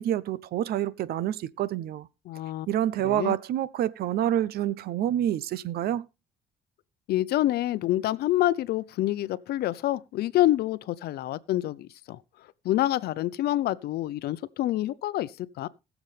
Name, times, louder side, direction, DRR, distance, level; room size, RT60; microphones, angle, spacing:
voice 1, 0.0-2.1 2.7-6.0, right 11 dB, 65° right, 0.8 m, -27 dB
voice 2, 2.3-2.7 3.0-3.4 7.1-12.2 12.6-15.7, left 14 dB, 70° left, 0.7 m, -27 dB
20.5 x 7.1 x 3.3 m
cardioid pair, 110°, 17 cm